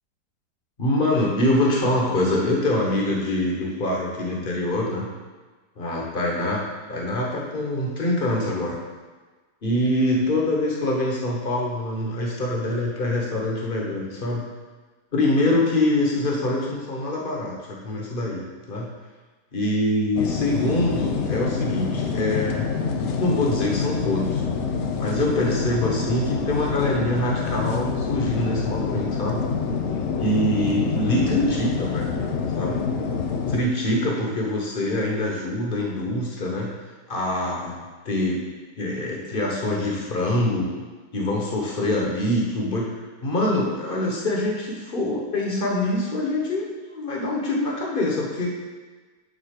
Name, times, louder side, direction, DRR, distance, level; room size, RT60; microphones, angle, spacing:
voice 1, 0.8-5.1 5.8-6.6 6.9-8.8 9.6-14.4 15.1-18.9 19.5-22.7 23.2-24.4 25.0-29.4 30.2-32.1 32.5-32.8 33.5-36.7 37.1-37.8 38.0-38.4 38.8-40.7 41.1-42.9 43.2-48.5, left 1 dB, 35° left, -2 dB, 1.4 m, -24 dB
sound 1, 20.2-33.6, left 5 dB, 60° left, 0.8 m, -26 dB
6.7 x 4.3 x 6.6 m, 1.3 s
omnidirectional pair, 1.8 m